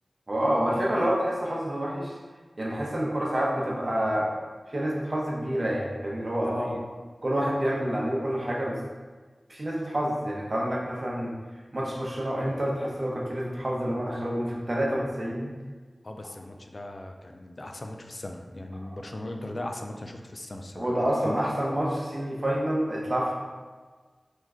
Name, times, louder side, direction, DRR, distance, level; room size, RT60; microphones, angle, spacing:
voice 1, 0.3-2.2 2.6-4.3 4.7-6.7 7.2-8.8 9.5-11.3 11.7-15.5 20.8-23.3, equal, 40° right, -3 dB, 0.7 m, -28 dB
voice 2, 6.5-6.8 16.0-21.0 21.2-21.5, left 1 dB, 45° left, 4 dB, 0.3 m, -38 dB
3.1 x 2.3 x 3.6 m, 1.4 s
wide cardioid pair, 75°, 0 cm